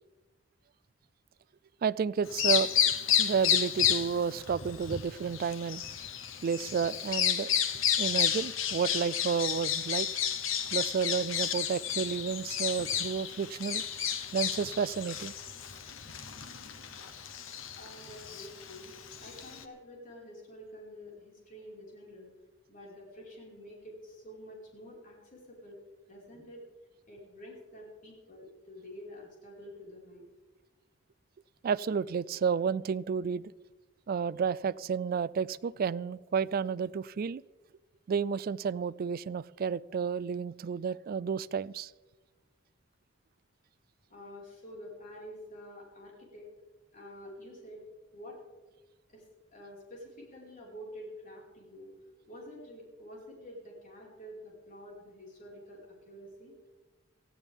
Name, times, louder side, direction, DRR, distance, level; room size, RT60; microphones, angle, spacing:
voice 1, 1.8-2.7 3.2-5.8 6.4-7.5 8.0-10.1 10.7-13.8 14.3-15.3 31.6-33.5 34.1-37.4 38.1-41.9, right 6 dB, 50° right, 19 dB, 0.3 m, -31 dB
Bird vocalization bird call bird song, 2.3-19.6, left 9 dB, 80° left, 1.1 m, -31 dB
voice 2, 17.8-22.3 22.7-25.8 26.1-26.6 27.1-30.2 44.1-46.5 46.9-47.8 48.1-48.4 49.1-49.2 49.5-51.9 52.3-56.5, equal, 45° left, -3 dB, 5.0 m, -48 dB
19.0 x 14.5 x 3.6 m, 1.2 s
head